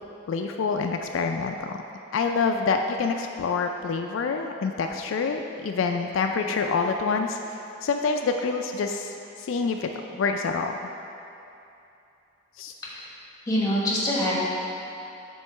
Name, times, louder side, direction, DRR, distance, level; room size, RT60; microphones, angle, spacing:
voice 1, 0.3-1.8 2.1-7.4 7.8-10.8 12.6-12.7, left 4 dB, 75° left, 4 dB, 0.3 m, -27 dB
voice 2, 13.5-14.4, equal, 15° left, -6 dB, 1.2 m, -25 dB
8.0 x 3.1 x 5.5 m, 2.8 s
head